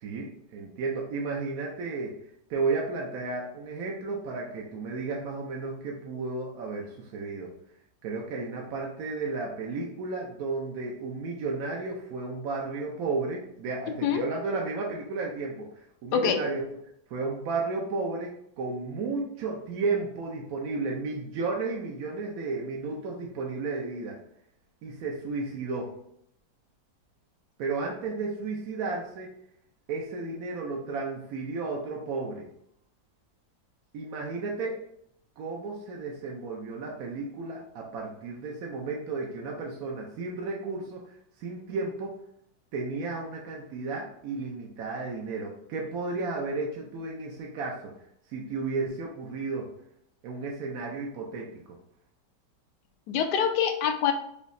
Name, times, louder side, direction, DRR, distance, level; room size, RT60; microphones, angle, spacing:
voice 1, 0.0-2.2 2.5-7.5 8.0-16.6 17.1-24.2 24.8-25.9 27.6-29.3 29.9-32.4 33.9-34.8 35.4-41.0 41.4-42.1 42.7-47.9 48.3-49.7 50.2-51.8, right 3 dB, 65° right, -1 dB, 1.0 m, -33 dB
voice 2, 53.1-54.1, left 7 dB, 70° left, 6 dB, 1.1 m, -25 dB
5.1 x 2.8 x 2.6 m, 0.72 s
omnidirectional pair, 2.0 m